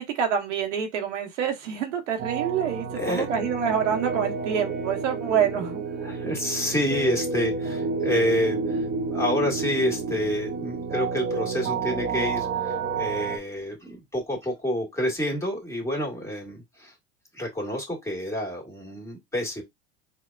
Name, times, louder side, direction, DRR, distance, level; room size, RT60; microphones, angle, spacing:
voice 1, 0.0-5.8, right 8 dB, 85° right, 1.0 m, -27 dB
sound 1, 2.2-13.4, right 4 dB, 25° right, 0.6 m, -30 dB
voice 2, 3.0-3.3 6.0-16.9 17.3-19.6, left 1 dB, 10° left, 1.7 m, -28 dB
4.4 x 2.3 x 2.3 m
hypercardioid pair, 90°, 35 cm